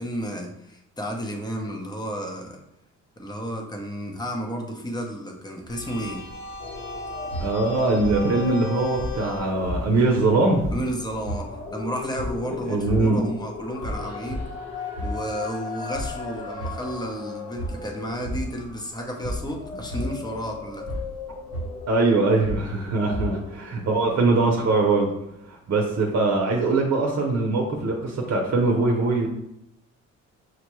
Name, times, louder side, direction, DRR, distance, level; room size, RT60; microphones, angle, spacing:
voice 1, 0.0-2.6 3.2-6.3 10.7-14.5 15.0-20.9, equal, 15° left, 2 dB, 0.8 m, -32 dB
sound 1, 5.7-11.1, left 2 dB, 70° left, 1.0 m, -39 dB
sound 2, 6.6-24.0, left 2 dB, 50° left, 1.2 m, -34 dB
voice 2, 7.4-10.7 12.7-13.2 21.9-25.1 25.5-29.3, right 3 dB, 55° right, 1 dB, 0.8 m, -22 dB
6.2 x 2.2 x 3.1 m, 0.82 s
cardioid pair, 90°, 30 cm